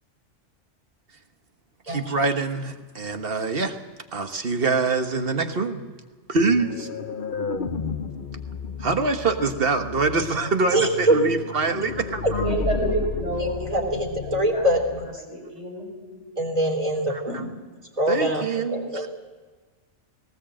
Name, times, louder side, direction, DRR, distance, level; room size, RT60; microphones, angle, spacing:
voice 1, 1.9-3.8 4.1-5.9 6.3-6.9 8.8-12.5 17.1-17.4 18.1-19.1, right 3 dB, 50° right, 6 dB, 1.6 m, -25 dB
sound 1, 6.4-15.1, left 5 dB, 45° left, 1.0 m, -33 dB
voice 2, 10.7-11.2 12.2-12.3 13.7-15.1 16.4-17.5 18.0-19.1, right 1 dB, 30° right, 3 dB, 3.2 m, -24 dB
voice 3, 12.4-14.7 15.2-16.2, right 1 dB, 75° right, 0 dB, 6.1 m, -29 dB
19.0 x 18.5 x 7.8 m, 1.4 s
omnidirectional pair, 1.2 m